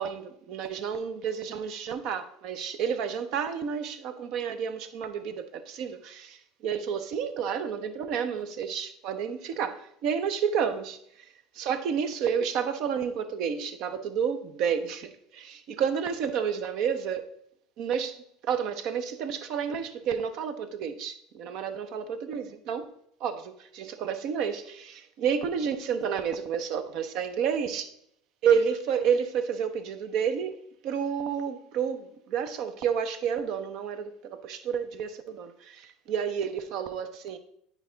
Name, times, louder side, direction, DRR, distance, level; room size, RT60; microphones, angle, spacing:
voice 1, 0.0-11.0 11.5-17.3 17.8-18.2 18.4-22.9 23.2-27.9 28.4-37.4, right 7 dB, 60° right, 0.7 m, -30 dB
9.1 x 4.6 x 3.9 m
hypercardioid pair, 75°, 0 cm